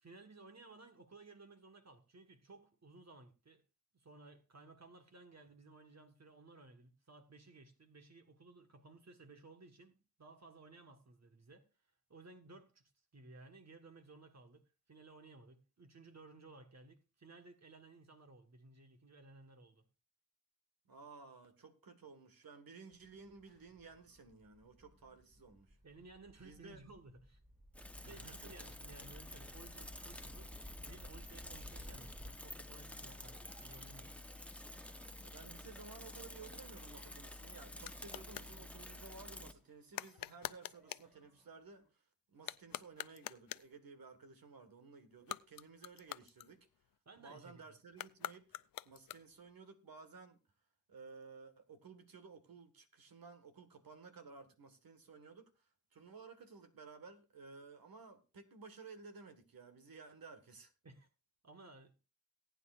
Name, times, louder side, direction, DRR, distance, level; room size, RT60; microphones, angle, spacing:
voice 1, 0.0-3.6 3.9-11.7 12.1-19.9 25.8-27.4 28.0-30.5 30.8-34.2 47.0-47.8 60.8-61.1 61.4-61.9, right 3 dB, 50° right, 1.5 m, -58 dB
voice 2, 20.9-25.8 26.4-26.8 28.0-28.5 35.2-42.0 42.3-46.6 47.2-50.4 50.9-55.5 55.9-60.7, right 4 dB, 85° right, 1.7 m, -55 dB
sound 1, 22.9-41.9, equal, 25° right, 5.3 m, -60 dB
Bicycle / Mechanisms, 27.7-39.5, left 1 dB, 5° left, 1.0 m, -50 dB
sound 2, 37.8-38.6 39.9-41.1 42.3-43.8 45.1-47.0 47.9-49.5, left 12 dB, 75° left, 0.5 m, -47 dB
19.0 x 9.2 x 2.5 m
cardioid pair, 60°, 35 cm